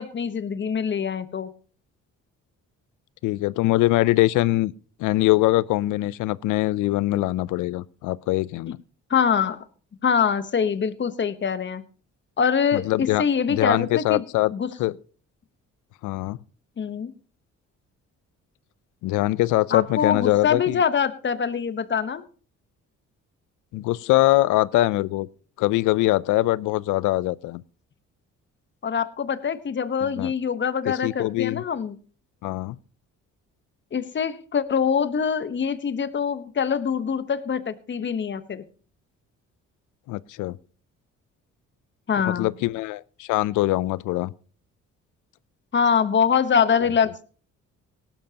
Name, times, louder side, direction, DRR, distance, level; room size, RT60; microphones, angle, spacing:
voice 1, 0.0-1.5 9.1-9.6 10.0-11.8 12.4-14.2 14.5-14.7 16.8-17.1 19.7-22.2 28.8-32.0 33.9-38.6 42.1-42.5 45.7-47.2, left 7 dB, 40° left, 1.1 m, -24 dB
voice 2, 3.2-4.7 5.0-8.8 12.7-13.2 13.5-14.5 14.8-15.0 16.0-16.4 19.0-20.8 23.7-25.3 25.6-27.6 30.0-30.3 31.0-31.6 32.4-32.8 40.1-40.6 42.3-44.3, left 17 dB, 90° left, 0.5 m, -22 dB
18.0 x 12.0 x 2.9 m
cardioid pair, 90°, 30 cm